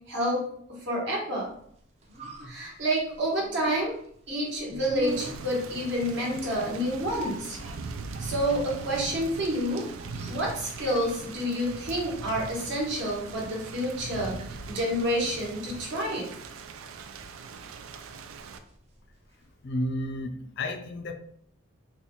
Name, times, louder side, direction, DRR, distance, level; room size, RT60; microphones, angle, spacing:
voice 1, 0.1-0.4 0.7-1.5 2.4-3.9 4.3-7.6 8.2-9.8 10.3-16.3, equal, 60° right, -3 dB, 1.1 m, -29 dB
sound 1, 1.6-19.6 19.9-20.0, right 1 dB, 30° right, 0.5 m, -46 dB
Thunder / Rain, 5.1-18.6, right 4 dB, 80° right, 0.3 m, -41 dB
voice 2, 19.6-21.1, left 1 dB, 55° left, 6 dB, 0.4 m, -31 dB
4.1 x 2.2 x 2.9 m, 0.67 s
head